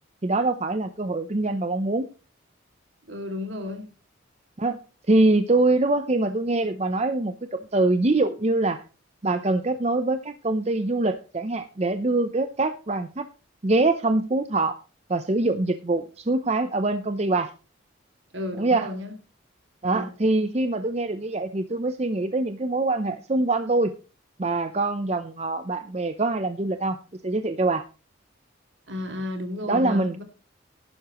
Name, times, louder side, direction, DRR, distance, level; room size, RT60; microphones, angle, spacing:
voice 1, 0.2-2.1 4.6-4.8 5.1-8.8 9.2-13.3 13.6-14.8 15.1-17.5 18.6-18.9 19.8-23.9 24.4-27.0 27.2-27.8 29.7-30.2, right 2 dB, 30° right, 9 dB, 0.6 m, -24 dB
voice 2, 3.1-3.9 18.3-19.1 19.9-20.1 28.9-30.2, left 1 dB, 65° right, 5 dB, 2.5 m, -33 dB
14.5 x 11.5 x 3.0 m, 0.33 s
head